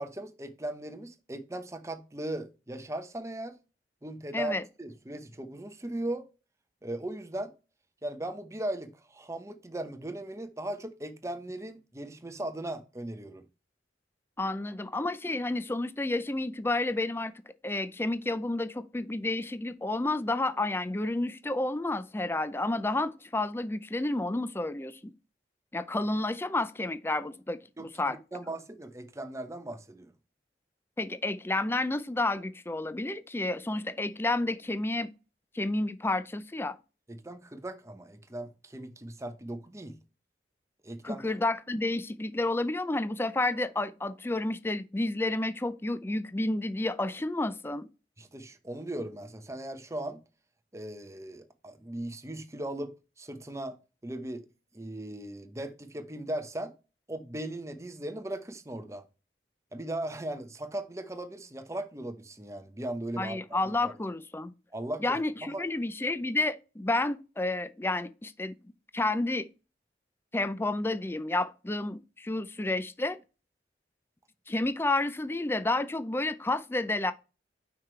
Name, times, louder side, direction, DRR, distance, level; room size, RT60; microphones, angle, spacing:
voice 1, 0.0-3.5 4.0-6.3 6.8-7.5 8.0-13.4 27.8-30.1 37.1-40.0 40.8-41.2 48.2-50.2 50.7-53.7 54.0-54.4 54.7-56.7 57.1-59.0 59.7-63.4 63.8-63.9 64.7-65.6, right 1 dB, 15° right, 0.8 m, -38 dB
voice 2, 4.3-4.6 14.4-17.3 17.6-25.1 25.7-28.2 31.0-35.1 35.5-36.8 41.0-47.9 63.2-64.5 65.0-68.5 68.9-69.5 70.3-73.2 74.5-77.1, left 2 dB, 15° left, 0.4 m, -30 dB
5.8 x 4.7 x 4.4 m
head